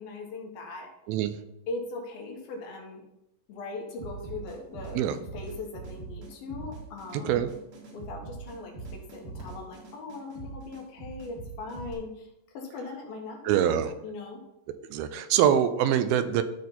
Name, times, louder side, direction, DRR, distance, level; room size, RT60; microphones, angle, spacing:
voice 1, 0.0-0.9 1.7-3.0 3.5-5.0 5.3-7.5 7.9-12.3 12.5-14.4, left 3 dB, 80° left, 1 dB, 3.3 m, -40 dB
sound 1, 4.0-11.9, right 4 dB, 65° right, 3.1 m, -42 dB
voice 2, 13.5-13.9 14.7-16.4, right 10 dB, 85° right, 11 dB, 2.5 m, -24 dB
12.5 x 4.3 x 4.1 m, 0.84 s
omnidirectional pair, 4.2 m